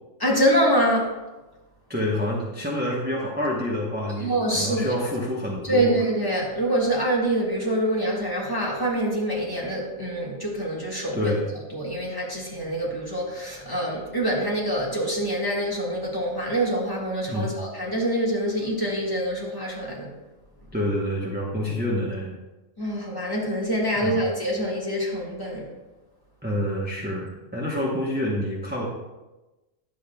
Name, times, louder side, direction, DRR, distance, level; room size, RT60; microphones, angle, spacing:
voice 1, 0.2-1.2 4.2-4.9 5.6-11.3 11.7-20.1 22.8-25.7, right 1 dB, 15° left, -3 dB, 1.5 m, -25 dB
voice 2, 1.9-5.9 11.1-11.4 17.3-17.6 20.7-22.3 24.0-24.2 26.4-28.9, left 1 dB, 10° right, -4 dB, 0.8 m, -27 dB
10.0 x 7.3 x 2.2 m, 1.1 s
omnidirectional pair, 1.4 m